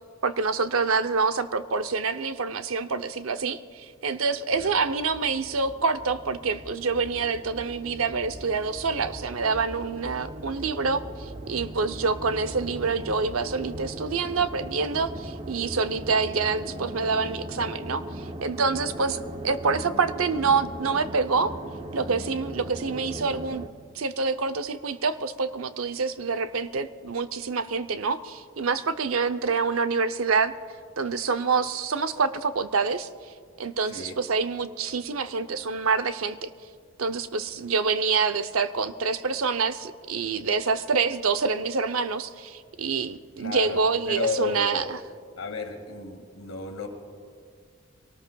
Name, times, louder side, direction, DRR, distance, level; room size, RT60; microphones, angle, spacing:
voice 1, 0.2-19.2 19.4-21.5 21.9-23.6 23.9-30.5 31.0-33.1 33.6-36.5 37.0-45.0, right 4 dB, 80° right, 10 dB, 0.7 m, -26 dB
sound 1, 4.5-23.7, right 1 dB, 30° right, 0.8 m, -39 dB
voice 2, 33.9-34.2 43.4-44.9 45.4-46.9, left 4 dB, 85° left, 4 dB, 2.0 m, -32 dB
24.0 x 18.5 x 2.3 m, 2.1 s
head